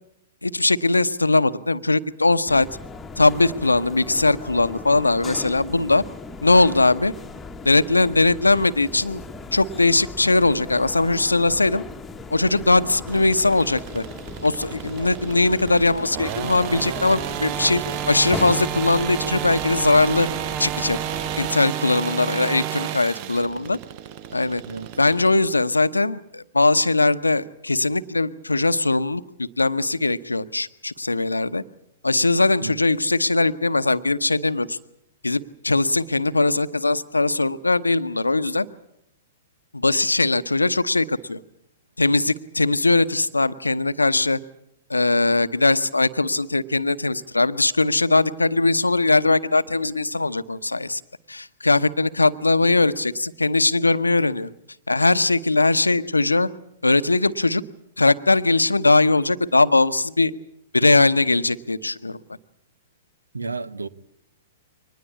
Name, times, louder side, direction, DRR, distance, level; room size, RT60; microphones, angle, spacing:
voice 1, 0.4-2.7 3.2-6.0 6.4-7.1 7.6-9.2 9.5-11.8 12.3-14.0 14.4-20.3 20.6-21.0 21.4-23.8 24.3-24.6 25.0-31.6 32.0-34.8 35.2-38.7 39.7-41.4 42.0-44.4 44.9-51.0 51.3-54.5 54.9-56.5 56.8-57.6 58.0-60.3 60.7-62.2, left 2 dB, 85° left, 0.9 m, -20 dB
sound 1, 2.5-21.5, left 3 dB, 10° left, 1.4 m, -37 dB
sound 2, 13.1-25.4, right 11 dB, 40° right, 0.9 m, -31 dB
voice 2, 63.3-63.9, right 4 dB, 80° right, 0.9 m, -31 dB
23.5 x 20.0 x 8.4 m
figure-of-eight pair, 110°, 0 cm